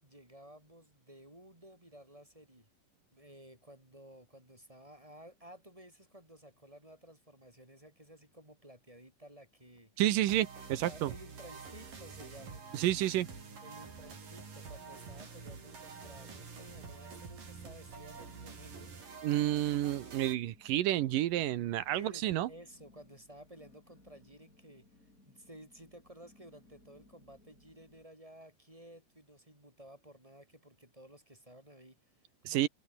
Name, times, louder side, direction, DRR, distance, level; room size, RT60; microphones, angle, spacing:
voice 1, 0.0-2.7 3.1-9.9 10.8-12.6 13.6-18.9 21.9-32.7, right 1 dB, 5° right, 4.8 m, -55 dB
sound 1, 9.7-10.6 10.9-11.5 12.0-12.1 12.9-28.0, left 2 dB, 20° left, 7.4 m, -65 dB
voice 2, 10.0-11.1 12.7-13.3 19.2-22.5 32.5-32.7, right 13 dB, 70° right, 2.2 m, -30 dB
sound 2, 10.3-20.3, right 5 dB, 50° right, 7.0 m, -48 dB
omnidirectional pair, 4.9 m